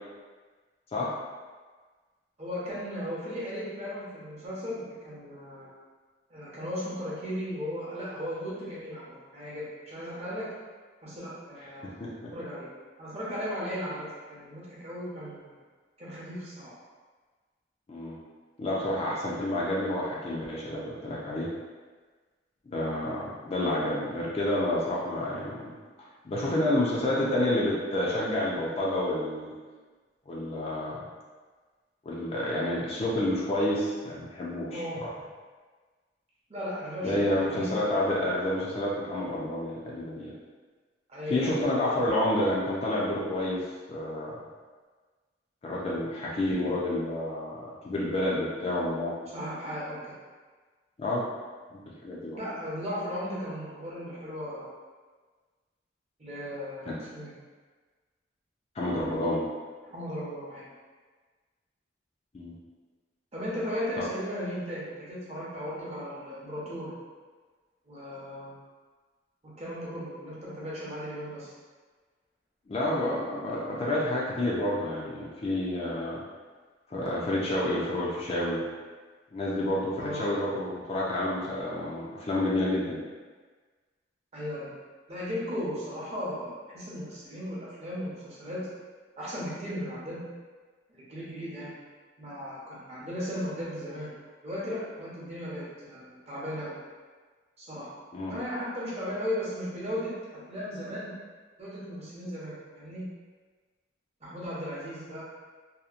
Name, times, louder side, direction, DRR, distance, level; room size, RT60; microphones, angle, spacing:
voice 1, 2.4-5.7 6.3-10.5 11.0-12.7 13.0-15.6 16.0-16.6 34.7-35.0 36.5-37.8 41.1-41.7 42.0-42.1 49.3-50.1 52.3-54.7 56.2-57.3 59.9-60.7 63.3-66.9 67.9-68.5 69.6-71.5 80.0-80.3 84.3-84.7 85.1-88.6 89.2-90.2 90.9-91.7 92.2-94.1 94.4-96.7 97.6-97.9 98.3-101.1 101.6-103.0 104.2-105.2, equal, 35° right, -8 dB, 0.7 m, -36 dB
voice 2, 11.8-12.3 17.9-18.2 18.6-21.5 22.7-25.7 26.2-29.5 30.3-31.1 32.0-35.1 37.0-40.3 41.3-43.6 43.9-44.4 45.6-49.1 51.0-51.3 51.7-52.4 56.9-57.0 58.8-59.4 62.3-62.5 64.0-64.1 72.7-76.2 76.9-78.7 79.3-83.0 98.1-98.3, left 1 dB, 35° left, -5 dB, 0.4 m, -29 dB
2.8 x 2.1 x 2.4 m, 1.4 s
head